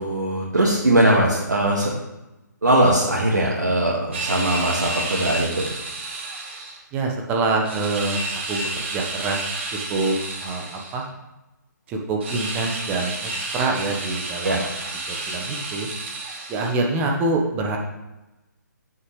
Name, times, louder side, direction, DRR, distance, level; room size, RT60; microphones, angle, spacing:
voice 1, 0.0-1.9 2.6-5.7 14.4-14.6, right 1 dB, 65° right, -4 dB, 2.0 m, -20 dB
sound 1, 4.1-6.8 7.6-11.0 12.2-16.8, right 2 dB, 35° right, 1.6 m, -31 dB
voice 2, 6.9-9.6 9.9-11.0 11.9-14.7 15.1-15.9 16.5-17.8, right 3 dB, 15° right, 1 dB, 1.2 m, -26 dB
15.0 x 6.4 x 3.3 m, 0.99 s
figure-of-eight pair, 140°, 10 cm